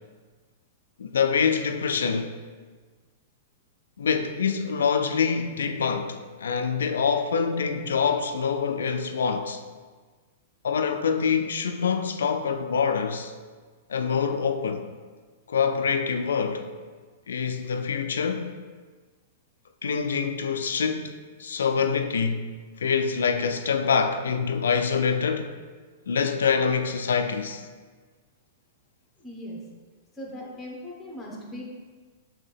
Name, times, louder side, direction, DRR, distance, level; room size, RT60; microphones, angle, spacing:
voice 1, 1.0-2.4 4.0-9.6 10.6-13.3 13.9-14.9 15.5-16.7 17.3-18.5 19.8-22.5 22.8-25.5 26.1-27.6, left 6 dB, 80° left, 0.3 m, -25 dB
voice 2, 29.2-29.6 30.1-31.6, equal, 10° left, 1.0 m, -39 dB
5.5 x 2.7 x 3.4 m
hypercardioid pair, 115°, 0 cm